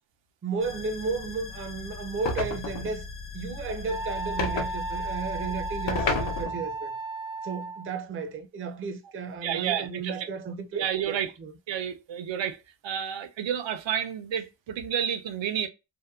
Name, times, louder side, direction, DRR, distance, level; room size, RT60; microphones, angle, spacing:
voice 1, 0.4-3.0 3.3-6.9 7.4-11.5, right 4 dB, 30° right, 0.4 m, -34 dB
sound 1, 0.6-6.4, left 4 dB, 55° left, 0.8 m, -39 dB
sound 2, 2.3-3.0 4.4-4.7 5.9-6.7, left 3 dB, 85° left, 0.7 m, -30 dB
Wind instrument woodwind instrument, 3.9-8.0, right 3 dB, 30° left, 0.5 m, -35 dB
voice 2, 9.4-10.3 10.7-11.3 11.7-12.6 12.8-15.7, right 9 dB, 90° right, 0.6 m, -30 dB
2.7 x 2.1 x 2.2 m
wide cardioid pair, 135°, 43 cm